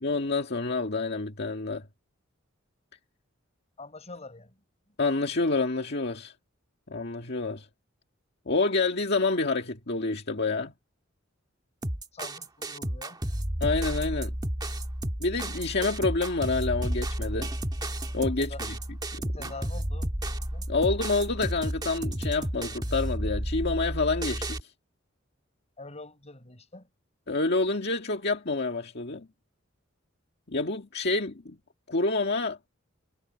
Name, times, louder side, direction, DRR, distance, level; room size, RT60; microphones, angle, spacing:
voice 1, 0.0-1.9 5.0-6.3 6.9-7.7 8.5-10.7 13.6-14.3 15.2-17.5 18.1-18.7 19.2-19.5 20.7-24.7 27.3-29.3 30.5-31.6 31.9-32.6, left 3 dB, 55° left, 2.0 m, -28 dB
voice 2, 3.8-4.6 12.1-13.2 18.2-18.6 19.3-20.7 25.8-26.9, left 3 dB, 35° left, 6.5 m, -45 dB
sound 1, 11.8-24.6, right 1 dB, 20° right, 1.7 m, -32 dB
head